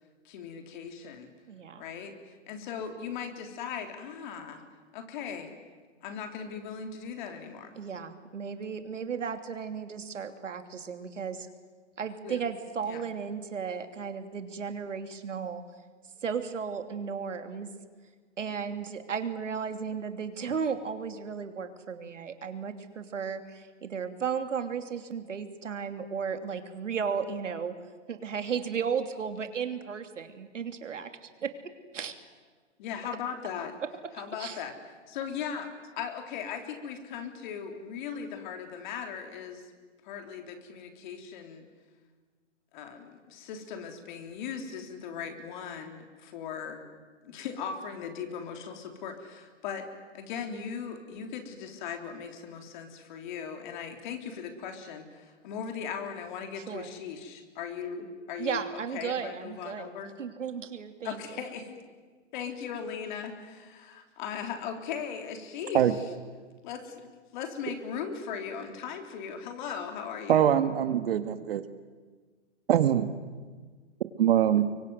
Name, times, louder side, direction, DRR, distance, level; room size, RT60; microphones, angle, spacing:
voice 1, 0.3-1.3 1.8-4.6 4.9-5.5 6.0-7.7 12.2-12.4 12.8-13.0 32.8-33.7 34.2-34.7 35.1-39.7 40.0-41.6 42.7-46.8 47.2-49.9 50.1-60.1 61.0-61.8 62.3-66.0 66.6-70.5, left 7 dB, 40° left, 5 dB, 3.6 m, -38 dB
voice 2, 1.5-1.9 7.8-11.5 12.0-15.6 16.2-17.7 18.4-27.7 28.1-32.1 34.1-34.6 56.5-56.9 58.4-59.9 60.2-61.4, right 6 dB, 80° right, 7 dB, 3.0 m, -35 dB
voice 3, 70.3-71.6 72.7-73.1 74.2-74.7, right 10 dB, 55° right, 11 dB, 1.7 m, -23 dB
25.0 x 24.0 x 9.4 m, 1.4 s
hypercardioid pair, 145°, 36 cm